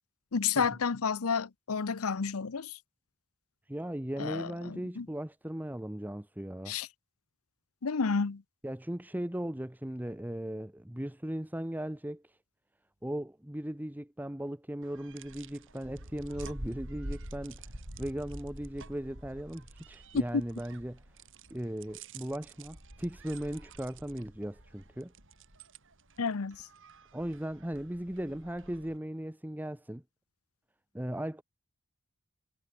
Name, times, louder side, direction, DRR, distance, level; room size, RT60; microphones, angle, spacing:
voice 1, 0.3-2.8 4.2-5.1 6.7-6.9 7.8-8.4 20.1-20.2 26.2-26.6, left 5 dB, 75° left, 0.7 m, -31 dB
voice 2, 3.7-6.8 8.6-12.4 13.0-21.0 21.5-25.1 27.1-30.0 30.9-31.4, right 1 dB, 10° right, 1.0 m, -37 dB
sound 1, 14.8-29.0, right 1 dB, 60° right, 6.4 m, -47 dB
head